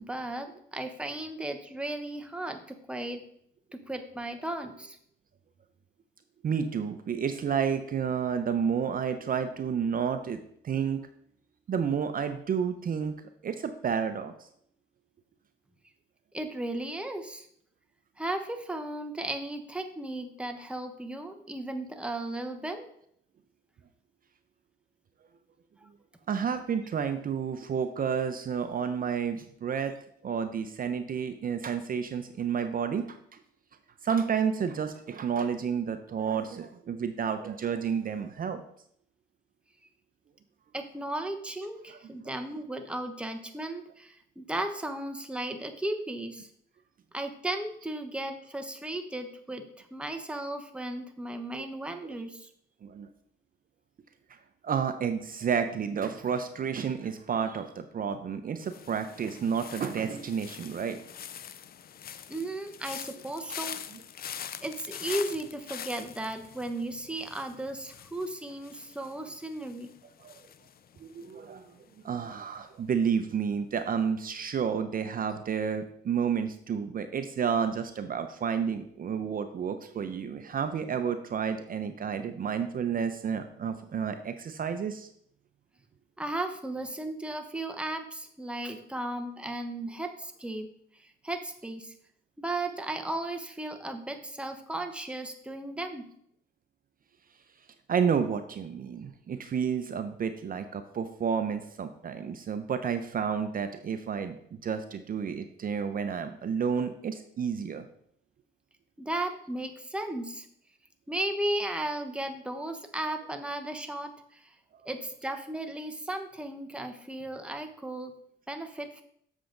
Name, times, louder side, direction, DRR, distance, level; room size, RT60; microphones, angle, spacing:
voice 1, 0.0-3.2 3.7-5.0 16.3-17.5 18.2-22.9 25.8-25.9 40.7-46.5 47.1-49.7 49.9-52.5 62.3-63.8 64.6-69.9 86.2-90.7 91.0-91.9 92.4-96.0 109.0-110.5 111.1-114.5 114.8-118.1 118.5-119.0, right 1 dB, 5° right, 6 dB, 1.0 m, -35 dB
voice 2, 6.4-11.0 11.7-13.1 13.4-14.3 26.3-29.9 30.2-33.4 34.0-38.6 41.9-42.1 51.5-51.7 52.8-53.1 54.6-61.0 63.4-63.5 63.9-64.0 70.2-70.3 71.0-71.6 72.0-85.1 97.9-104.3 104.6-107.9, right 7 dB, 45° right, 8 dB, 0.7 m, -30 dB
sound 1, 58.6-71.7 71.9-72.4, left 9 dB, 50° left, 0.5 m, -44 dB
7.5 x 7.0 x 3.8 m, 0.67 s
cardioid pair, 90°, 20 cm